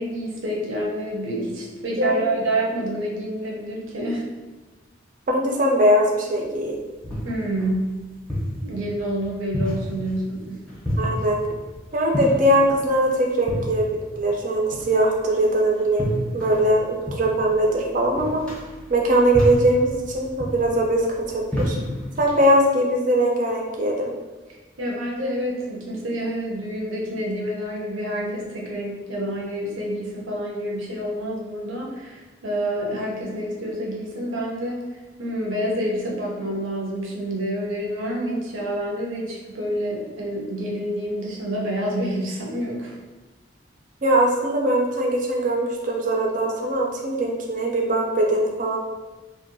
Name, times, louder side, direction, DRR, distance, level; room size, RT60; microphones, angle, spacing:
voice 1, 0.0-4.3 7.2-7.9 8.6-10.6 24.8-34.8 35.2-43.0, right 1 dB, 80° right, -3 dB, 0.6 m, -28 dB
voice 2, 5.3-6.8 11.0-11.4 11.9-13.9 14.2-18.4 18.9-21.8 22.2-24.1 44.0-48.8, right 1 dB, 40° right, 0 dB, 0.4 m, -21 dB
sound 1, 6.5-22.4, equal, 5° left, 0.6 m, -31 dB
2.6 x 2.1 x 2.6 m, 1.2 s
head